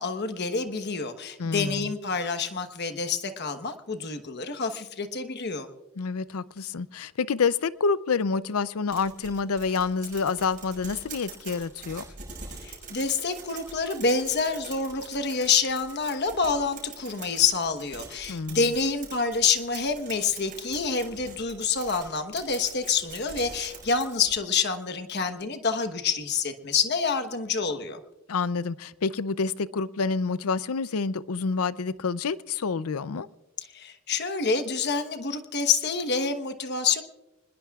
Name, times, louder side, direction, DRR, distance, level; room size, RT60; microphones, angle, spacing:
voice 1, 0.0-5.7 12.6-28.0 33.7-37.0, left 5 dB, 50° left, 8 dB, 1.1 m, -27 dB
voice 2, 1.4-1.9 6.0-12.0 18.3-18.6 28.3-33.3, left 5 dB, 75° left, 17 dB, 0.5 m, -28 dB
sound 1, 8.9-24.3, right 5 dB, 35° right, 6.6 m, -44 dB
25.5 x 20.5 x 2.4 m, 1.0 s
head